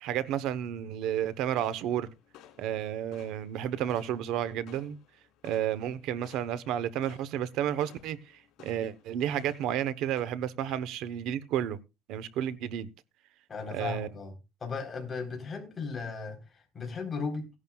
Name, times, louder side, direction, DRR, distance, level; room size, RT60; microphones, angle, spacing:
voice 1, 0.0-2.1 2.6-5.0 5.4-8.2 8.6-11.8 12.1-12.9 13.7-14.1, right 10 dB, 70° right, 1.0 m, -31 dB
sound 1, 1.0-10.2, left 10 dB, 65° left, 3.1 m, -57 dB
voice 2, 13.5-14.3 14.6-17.5, left 4 dB, 25° left, 3.9 m, -36 dB
17.0 x 11.0 x 2.4 m
cardioid pair, 155°, 0 cm